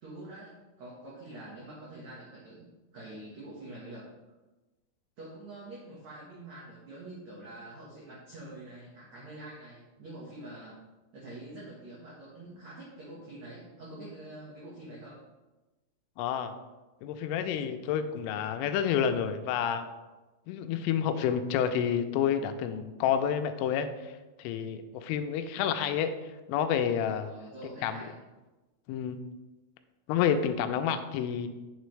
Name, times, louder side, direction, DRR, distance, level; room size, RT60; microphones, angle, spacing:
voice 1, 0.0-4.0 5.2-10.8 11.1-15.2 27.2-28.2, right 1 dB, 80° right, -6 dB, 1.6 m, -46 dB
voice 2, 16.2-16.5 17.0-19.9 20.5-24.1 24.4-26.1 26.5-27.3 27.8-28.0 28.9-29.2 30.1-31.5, left 8 dB, 90° left, 8 dB, 3.2 m, -29 dB
9.2 x 6.7 x 3.2 m, 1.1 s
omnidirectional pair, 5.6 m